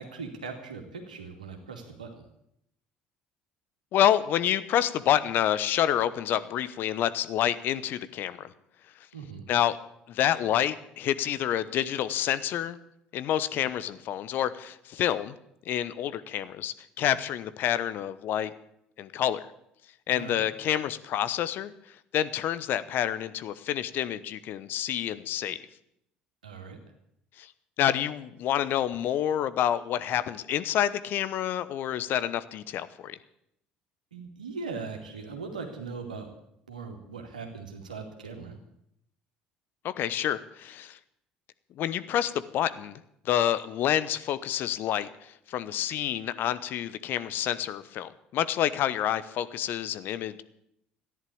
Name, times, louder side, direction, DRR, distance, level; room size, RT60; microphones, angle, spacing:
voice 1, 0.0-2.3 9.1-9.5 20.1-20.4 26.4-26.8 34.1-36.3 36.7-38.6, right 4 dB, 85° right, 3 dB, 2.4 m, -39 dB
voice 2, 3.9-8.5 9.5-9.8 10.1-12.8 13.1-15.3 15.6-18.5 19.0-19.4 20.1-21.7 22.1-25.6 27.4-27.5 27.8-33.2 39.8-41.0 41.8-43.0 43.2-50.4, left 11 dB, 55° left, 15 dB, 1.0 m, -28 dB
14.0 x 11.0 x 8.7 m, 0.76 s
hypercardioid pair, 60°, 4 cm